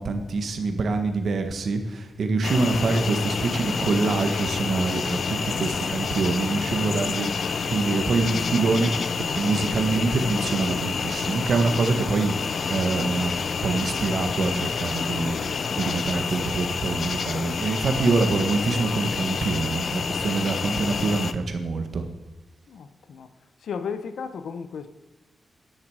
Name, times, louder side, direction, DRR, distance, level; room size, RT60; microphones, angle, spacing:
voice 1, 0.0-13.3 13.6-15.4 15.8-22.0, right 3 dB, 55° right, 7 dB, 1.5 m, -25 dB
sound 1, 2.4-21.3, left 5 dB, 50° left, 0.6 m, -28 dB
voice 2, 22.7-23.3 23.6-24.9, left 6 dB, 85° left, 11 dB, 1.0 m, -34 dB
13.5 x 10.5 x 5.0 m, 1.1 s
wide cardioid pair, 180°, 0 cm